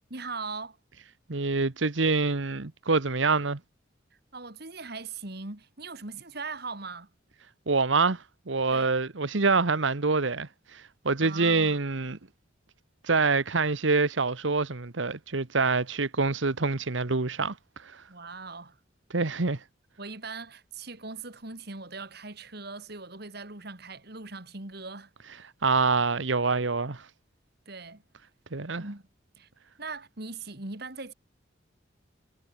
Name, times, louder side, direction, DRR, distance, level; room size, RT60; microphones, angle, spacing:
voice 1, 0.1-0.8 4.3-7.1 8.7-8.9 11.2-11.8 18.1-18.8 20.0-25.5 27.7-28.0 28.8-29.0 29.3-29.5 29.8-31.1, right 3 dB, 55° right, 2.8 m, -40 dB
voice 2, 1.3-3.6 7.7-12.2 13.0-17.5 17.8-18.0 19.1-19.6 25.6-27.1 28.5-28.8, right 4 dB, 75° right, 1.2 m, -26 dB
head